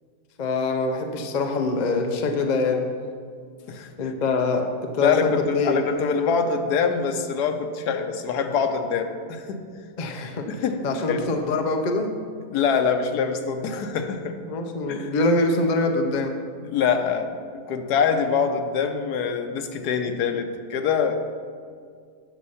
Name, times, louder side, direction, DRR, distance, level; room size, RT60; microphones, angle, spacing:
voice 1, 0.4-2.9 4.0-5.8 10.0-10.5 10.8-12.1 14.5-16.3, left 3 dB, 45° left, 4 dB, 0.5 m, -24 dB
voice 2, 3.7-4.1 5.0-9.7 10.5-11.2 12.5-14.4 14.9-15.1 16.6-21.2, left 6 dB, 90° left, 6 dB, 1.3 m, -25 dB
7.7 x 6.4 x 5.5 m, 2.1 s
omnidirectional pair, 1.7 m